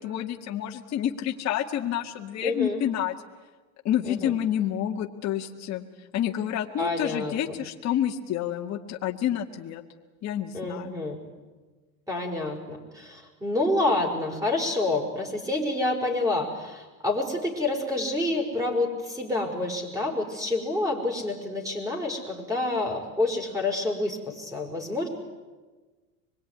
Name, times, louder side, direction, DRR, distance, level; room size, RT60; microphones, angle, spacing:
voice 1, 0.0-3.1 3.8-5.8 6.1-9.8 10.2-10.9, left 10 dB, 40° left, 2 dB, 1.8 m, -29 dB
voice 2, 2.4-2.8 4.0-4.3 6.8-7.6 10.5-11.2 12.1-25.1, left 2 dB, 10° right, 2 dB, 5.3 m, -28 dB
25.0 x 21.5 x 9.8 m, 1.3 s
supercardioid pair, 135°, 42 cm